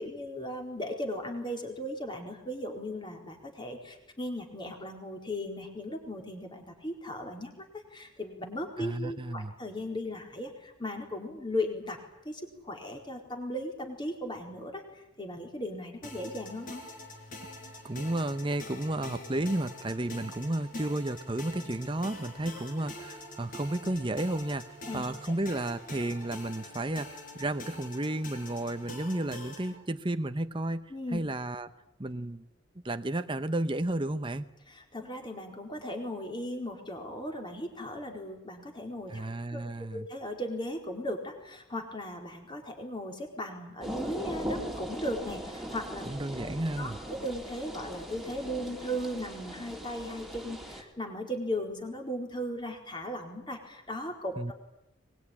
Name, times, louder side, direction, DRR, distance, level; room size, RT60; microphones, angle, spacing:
voice 1, 0.0-12.0 12.2-16.8 24.9-25.3 30.9-31.2 34.7-39.3 39.5-39.6 39.9-46.1 46.8-46.9 47.2-54.5, left 1 dB, 20° left, 3 dB, 4.4 m, -37 dB
voice 2, 8.8-9.5 17.8-30.8 31.1-31.7 32.0-32.4 32.8-34.5 39.1-40.1 46.1-47.0 54.4-54.5, right 1 dB, 25° right, 9 dB, 0.9 m, -32 dB
sound 1, 16.0-29.7, left 1 dB, 40° left, 5.4 m, -45 dB
sound 2, 43.8-50.8, equal, ahead, 3.5 m, -40 dB
23.0 x 21.5 x 10.0 m, 0.86 s
head